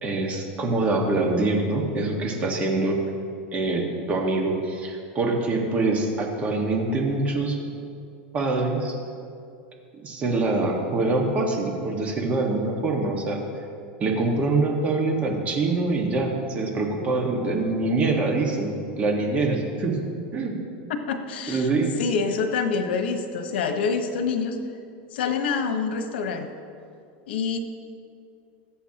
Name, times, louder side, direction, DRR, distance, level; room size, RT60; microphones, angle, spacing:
voice 1, 0.0-3.0 3.5-7.6 8.3-9.0 10.0-13.4 14.0-20.0 20.3-20.6 21.5-21.9, right 3 dB, 25° right, 1 dB, 1.6 m, -24 dB
voice 2, 20.9-21.7 22.0-24.6 25.1-26.5 27.3-27.6, left 5 dB, 90° left, 6 dB, 1.1 m, -26 dB
20.5 x 8.2 x 2.9 m, 2.4 s
supercardioid pair, 150°, 5 cm